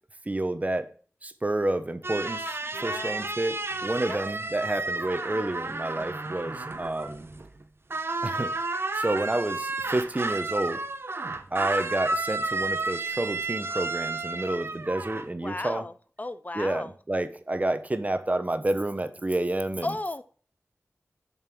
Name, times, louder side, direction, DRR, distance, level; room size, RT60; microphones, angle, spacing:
voice 1, 0.3-0.9 1.2-3.6 3.8-7.3 8.2-8.5 8.9-10.8 11.5-15.8 16.5-19.9, right 1 dB, 30° right, 10 dB, 0.9 m, -29 dB
sound 1, 2.0-7.6 7.9-15.3, right 3 dB, 55° right, 0.8 m, -32 dB
voice 2, 2.7-3.3 4.0-4.4 15.4-16.9 19.8-20.2, left 2 dB, 35° left, 13 dB, 0.5 m, -35 dB
7.3 x 5.5 x 6.1 m, 0.42 s
wide cardioid pair, 70°, 5 cm